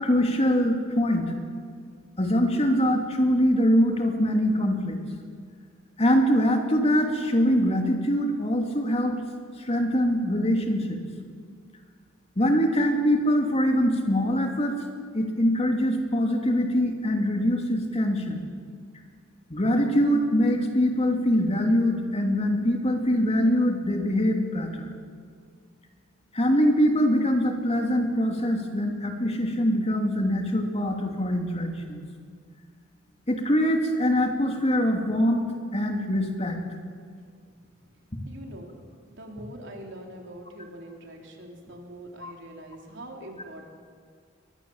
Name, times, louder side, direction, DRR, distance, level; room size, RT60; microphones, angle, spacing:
voice 1, 0.0-1.3 2.2-5.0 6.0-9.2 9.6-11.0 12.4-14.7 15.1-18.4 19.5-24.9 26.3-32.0 33.3-35.5 35.7-36.6 42.2-42.3, equal, 30° left, 3 dB, 2.7 m, -23 dB
voice 2, 38.3-38.8 39.1-43.7, right 1 dB, 65° right, 1 dB, 3.8 m, -43 dB
23.5 x 20.0 x 7.3 m, 2.1 s
head